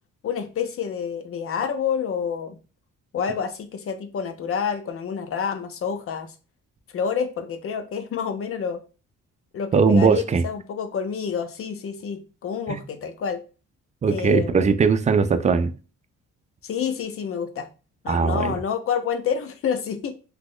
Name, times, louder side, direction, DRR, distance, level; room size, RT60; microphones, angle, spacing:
voice 1, 0.2-2.6 3.1-6.3 6.9-8.8 9.5-13.4 14.1-14.7 16.6-17.7 18.0-20.1, left 7 dB, 50° left, 0.5 m, -28 dB
voice 2, 9.7-10.4 12.7-12.8 14.0-15.7 18.1-18.6, right 5 dB, 25° right, 0.3 m, -19 dB
2.9 x 2.1 x 3.7 m
cardioid pair, 90°, 30 cm